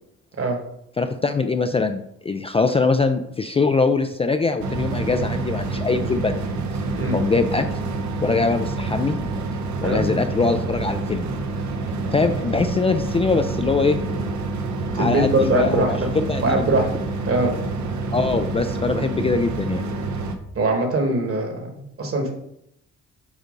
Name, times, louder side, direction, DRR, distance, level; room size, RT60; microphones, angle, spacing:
voice 1, 1.0-6.4 7.1-7.7 8.2-9.2 9.8-11.3 12.1-14.0 14.9-16.7 18.1-19.8, left 4 dB, 20° left, 7 dB, 0.4 m, -22 dB
sound 1, 4.6-20.4, right 3 dB, 70° right, 0.9 m, -27 dB
voice 2, 14.9-16.1 16.4-16.9 17.3-17.5 20.5-22.3, right 2 dB, 50° right, 3 dB, 1.6 m, -22 dB
8.0 x 2.7 x 5.1 m, 0.77 s
cardioid pair, 90°, 30 cm